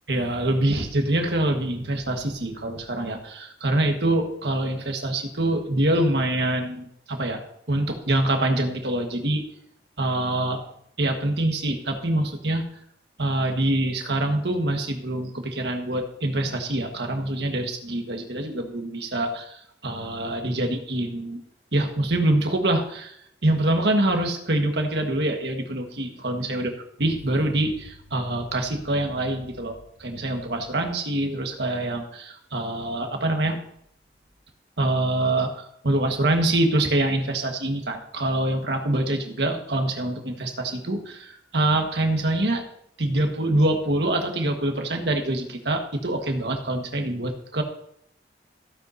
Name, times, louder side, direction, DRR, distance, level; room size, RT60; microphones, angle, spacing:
voice 1, 0.1-7.4 7.7-9.4 10.0-10.6 11.0-12.6 13.2-21.4 21.7-23.2 23.4-26.7 27.0-33.6 34.8-42.6 43.0-47.6, right 1 dB, 75° right, 4 dB, 1.6 m, -25 dB
15.0 x 9.2 x 2.7 m, 0.71 s
head